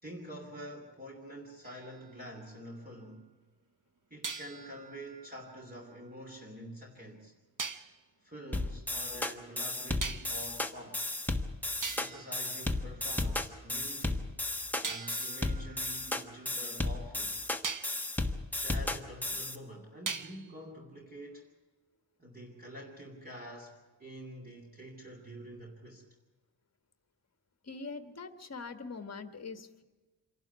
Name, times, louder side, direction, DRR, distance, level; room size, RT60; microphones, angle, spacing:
voice 1, 0.0-3.2 4.1-7.3 8.2-11.0 11.9-14.3 14.8-17.4 18.5-21.5 22.2-26.0, equal, 20° right, -1 dB, 2.9 m, -47 dB
sound 1, 1.6-3.1 4.2-6.4 7.6-8.0 10.0-10.5 11.3-11.4 11.8-13.4 14.8-17.0 17.6-18.1 20.1-20.6, right 5 dB, 45° right, 1.1 m, -43 dB
sound 2, 8.5-19.6, left 2 dB, 5° left, 1.2 m, -34 dB
voice 2, 27.6-29.8, left 4 dB, 35° left, 8 dB, 1.6 m, -43 dB
27.0 x 12.0 x 9.5 m, 1.3 s
wide cardioid pair, 155°, 44 cm